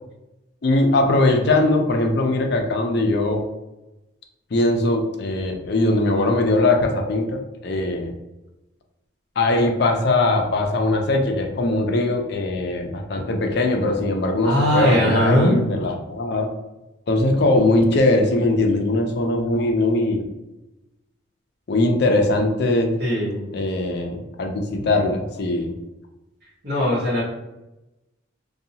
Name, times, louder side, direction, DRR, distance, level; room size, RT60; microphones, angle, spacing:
voice 1, 0.6-3.4 4.5-8.1 9.4-16.5 17.1-20.3 21.7-22.9 23.5-25.7, left 2 dB, 55° left, 3 dB, 0.4 m, -20 dB
voice 2, 14.4-15.6 23.0-23.4 26.6-27.2, equal, 55° right, -6 dB, 1.3 m, -19 dB
2.7 x 2.3 x 2.7 m, 0.98 s
head